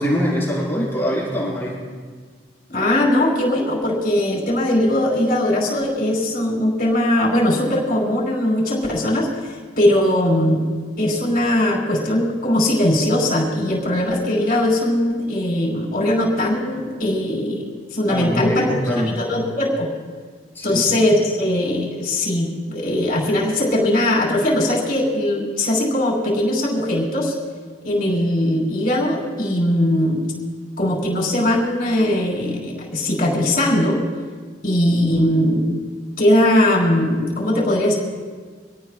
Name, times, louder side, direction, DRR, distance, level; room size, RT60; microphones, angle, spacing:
voice 1, 0.0-1.8 18.1-19.3 20.5-20.8, equal, 10° left, -6 dB, 5.2 m, -23 dB
voice 2, 2.7-10.7 11.0-17.6 17.9-19.9 20.6-27.3 27.8-30.3 30.8-34.0 34.6-35.8 36.2-38.0, left 1 dB, 50° left, -2 dB, 4.7 m, -20 dB
26.0 x 17.5 x 2.5 m, 1.5 s
head